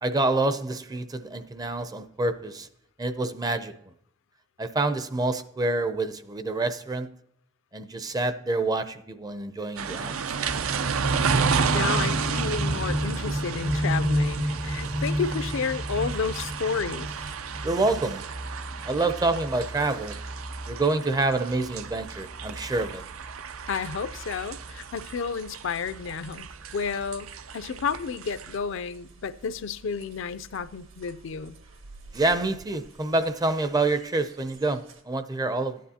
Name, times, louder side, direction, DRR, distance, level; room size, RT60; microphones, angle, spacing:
voice 1, 0.0-2.7 3.0-3.7 4.6-7.1 7.7-10.1 17.6-18.2 18.8-20.2 20.7-23.0 32.1-35.8, right 2 dB, 20° right, 0.4 m, -27 dB
sound 1, 9.8-28.6, right 6 dB, 90° right, 0.5 m, -32 dB
sound 2, 10.5-28.3 28.7-28.8, equal, 55° right, 0.9 m, -33 dB
voice 2, 11.5-17.1 23.7-26.5 26.7-31.5, left 5 dB, 65° left, 0.4 m, -31 dB
sound 3, 22.6-35.0, right 3 dB, 70° right, 1.2 m, -52 dB
13.5 x 9.3 x 2.8 m
head